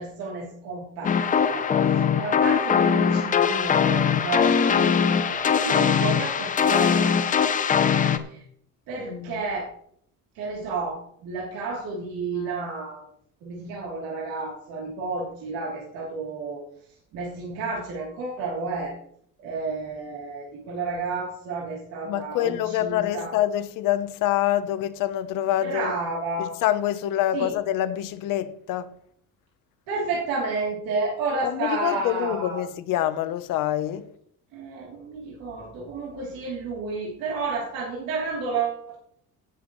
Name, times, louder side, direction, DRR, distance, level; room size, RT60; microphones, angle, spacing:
voice 1, 0.0-1.7 2.0-7.1 8.1-8.4 8.9-9.7 10.3-13.0 13.4-16.6 17.1-18.9 19.4-23.3 25.6-26.5 27.3-27.5 29.9-32.6 34.5-39.0, right 3 dB, 85° right, 3.3 m, -31 dB
sound 1, 1.0-8.2, left 7 dB, 25° left, 0.6 m, -21 dB
voice 2, 9.1-9.4 12.4-12.6 22.0-25.9 26.4-28.9 31.4-34.1, left 12 dB, 65° left, 1.0 m, -26 dB
18.0 x 7.6 x 3.2 m
cardioid pair, 175°, 34 cm